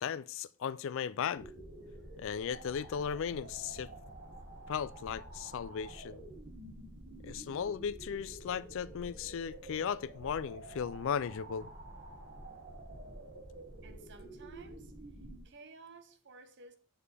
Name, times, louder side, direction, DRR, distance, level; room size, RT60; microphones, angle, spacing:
voice 1, 0.0-1.5 2.2-3.9 4.7-6.2 7.2-11.7, left 7 dB, 60° left, 0.3 m, -36 dB
sound 1, 1.4-15.4, right 1 dB, 75° right, 2.6 m, -49 dB
voice 2, 13.8-14.9 15.4-16.8, right 3 dB, 55° right, 0.8 m, -55 dB
7.4 x 6.4 x 3.3 m
head